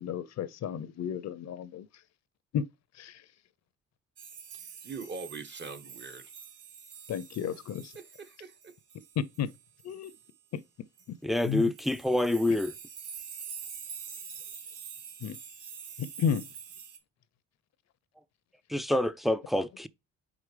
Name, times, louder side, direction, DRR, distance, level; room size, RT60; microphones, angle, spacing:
voice 1, 0.0-1.9 2.5-2.6 2.9-3.2 7.1-7.8 9.2-9.5 9.8-10.1 10.5-10.6 11.1-11.2 11.4-11.7 12.5-12.6 15.2-15.4 16.0-16.4, left 8 dB, 60° left, 0.6 m, -32 dB
sound 1, 4.2-10.3 11.0-11.1 11.3-17.0, right 7 dB, 85° right, 1.1 m, -46 dB
voice 2, 4.8-6.2 7.9-8.7, right 4 dB, 35° right, 1.2 m, -42 dB
voice 3, 11.2-12.7 18.7-19.9, left 1 dB, ahead, 0.4 m, -27 dB
5.0 x 3.9 x 4.9 m
cardioid pair, 90°, 30 cm